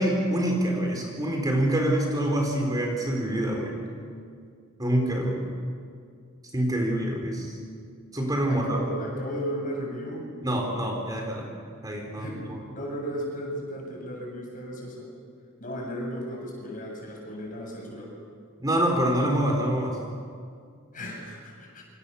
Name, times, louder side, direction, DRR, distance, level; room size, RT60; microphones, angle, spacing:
voice 1, 0.0-3.8 4.8-5.4 6.5-7.5 8.1-8.8 10.4-11.4 11.8-12.6 18.6-20.0, right 1 dB, 20° right, 1 dB, 4.3 m, -26 dB
voice 2, 8.5-10.3 12.1-15.1 15.6-18.1 20.9-21.8, equal, 40° left, 0 dB, 7.8 m, -35 dB
28.5 x 26.5 x 7.1 m, 2.2 s
head